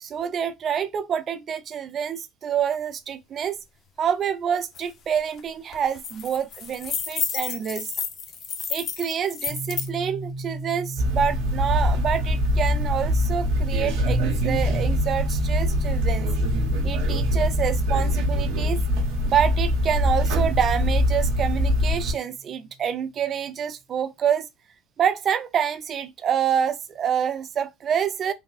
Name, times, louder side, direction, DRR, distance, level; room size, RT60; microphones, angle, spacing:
voice 1, 0.0-3.6 4.0-7.9 8.7-16.3 16.8-18.8 19.3-24.5 25.0-28.3, right 8 dB, 45° right, 0.4 m, -27 dB
sound 1, 4.7-4.8 5.2-5.4 5.7-9.9, left 6 dB, 50° left, 0.6 m, -31 dB
sound 2, 9.5-23.1, right 1 dB, 10° right, 0.8 m, -37 dB
sound 3, 11.0-22.1, equal, 75° right, 0.8 m, -23 dB
3.4 x 2.1 x 2.3 m
hypercardioid pair, 80°, 0 cm